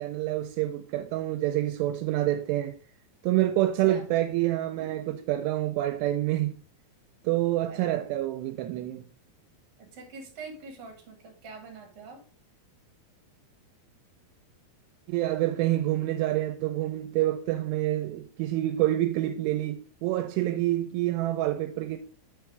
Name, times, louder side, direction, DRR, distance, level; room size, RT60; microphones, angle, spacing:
voice 1, 0.0-2.8 3.2-6.6 7.2-9.0 15.1-22.0, right 14 dB, 85° right, 2.7 m, -27 dB
voice 2, 7.7-8.1 9.8-12.2, right 4 dB, 50° right, 1.9 m, -45 dB
6.0 x 4.6 x 4.8 m
omnidirectional pair, 4.9 m